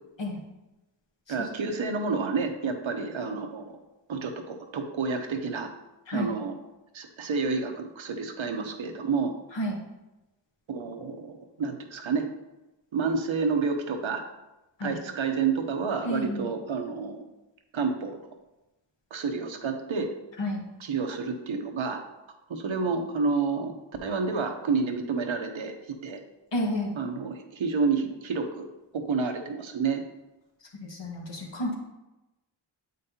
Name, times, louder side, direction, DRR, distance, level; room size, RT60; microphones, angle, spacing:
voice 1, 1.3-3.8 4.1-5.7 6.1-6.6 6.9-9.3 10.7-12.3 12.9-14.2 14.8-17.2 17.7-18.1 19.1-20.1 20.8-22.0 22.5-23.7 24.0-25.7 26.0-26.2 27.0-28.7 28.9-30.0, right 4 dB, 75° right, 5 dB, 0.9 m, -29 dB
voice 2, 16.0-16.5 20.4-20.6 26.5-26.9 30.8-31.7, left 1 dB, 65° left, -1 dB, 1.6 m, -31 dB
7.6 x 5.3 x 2.8 m, 1.0 s
cardioid pair, 45°, 48 cm